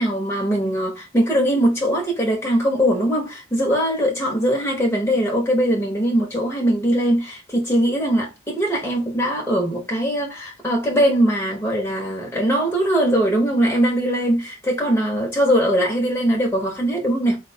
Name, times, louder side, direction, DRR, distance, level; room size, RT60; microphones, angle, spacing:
voice 1, 0.0-17.4, equal, 10° left, 0.9 m, -21 dB
4.3 x 2.3 x 4.2 m
head